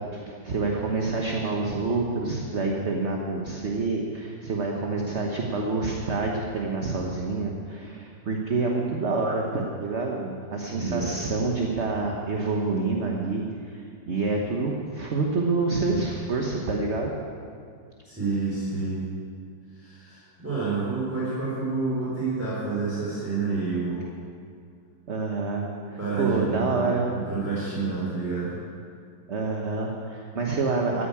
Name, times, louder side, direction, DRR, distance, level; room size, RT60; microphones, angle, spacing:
voice 1, 0.0-17.1 25.1-27.1 29.3-31.1, right 3 dB, 40° right, 0 dB, 1.3 m, -27 dB
voice 2, 10.7-11.3 18.0-19.0 19.7-24.1 26.0-28.6, right 4 dB, 5° right, -9 dB, 4.2 m, -29 dB
14.5 x 9.7 x 8.6 m, 2.2 s
omnidirectional pair, 2.2 m